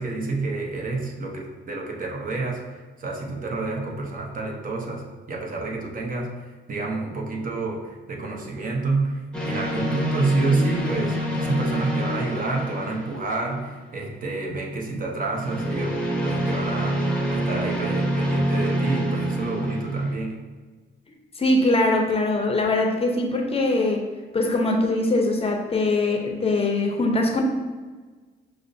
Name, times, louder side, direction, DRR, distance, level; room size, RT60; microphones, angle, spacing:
voice 1, 0.0-2.6 3.0-6.3 6.7-17.0 17.3-20.4, right 3 dB, 45° right, 0 dB, 0.7 m, -28 dB
sound 1, 9.3-13.8 15.3-20.2, right 1 dB, 5° left, 0.8 m, -26 dB
voice 2, 21.4-24.0 24.3-27.4, left 2 dB, 30° left, 2 dB, 0.5 m, -22 dB
6.1 x 2.1 x 2.6 m, 1.3 s
cardioid pair, 90°, 20 cm